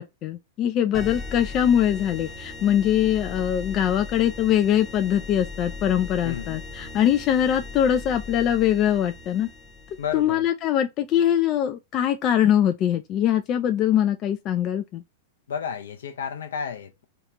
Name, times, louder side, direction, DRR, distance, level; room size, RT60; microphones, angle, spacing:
voice 1, 0.0-9.5 10.1-15.0, left 10 dB, 35° left, 0.3 m, -22 dB
sound 1, 0.9-10.4, left 3 dB, 10° left, 0.8 m, -38 dB
voice 2, 6.2-6.6 10.0-10.4 15.5-17.0, left 7 dB, 70° left, 0.7 m, -32 dB
2.9 x 2.4 x 2.7 m
figure-of-eight pair, 100°, 0 cm